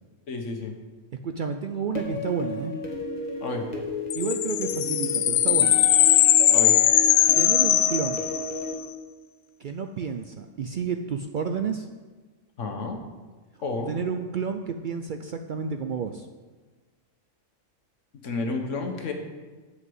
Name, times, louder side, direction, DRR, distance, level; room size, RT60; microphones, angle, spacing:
voice 1, 0.3-0.7 3.4-3.7 6.5-6.7 12.6-13.0 13.6-13.9 18.2-19.1, left 3 dB, 65° left, 4 dB, 1.5 m, -30 dB
voice 2, 1.2-2.7 4.1-5.8 7.3-8.3 9.6-11.9 13.9-16.3, right 6 dB, 75° right, 7 dB, 0.4 m, -30 dB
sound 1, 2.0-8.7, left 2 dB, 30° left, 1.5 m, -33 dB
sound 2, 4.1-8.7, left 11 dB, 85° left, 1.0 m, -20 dB
8.1 x 5.8 x 7.8 m, 1.4 s
omnidirectional pair, 1.4 m